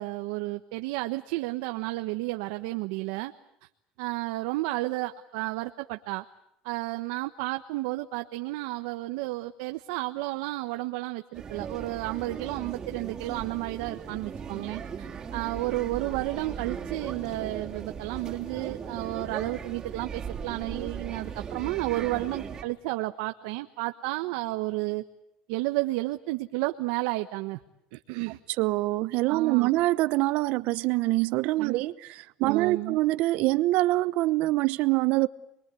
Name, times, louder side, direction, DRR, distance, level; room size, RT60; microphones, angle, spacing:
voice 1, 0.0-3.3 4.0-6.2 6.6-25.0 25.5-27.6 27.9-28.4 29.3-29.7 31.6-31.8 32.4-33.0, right 19 dB, 85° right, 1.1 m, -32 dB
sound 1, 11.3-22.6, right 6 dB, 25° right, 3.7 m, -38 dB
voice 2, 28.6-31.9 32.4-35.3, right 19 dB, 65° right, 1.0 m, -24 dB
28.0 x 22.5 x 8.4 m
cardioid pair, 145°, 3 cm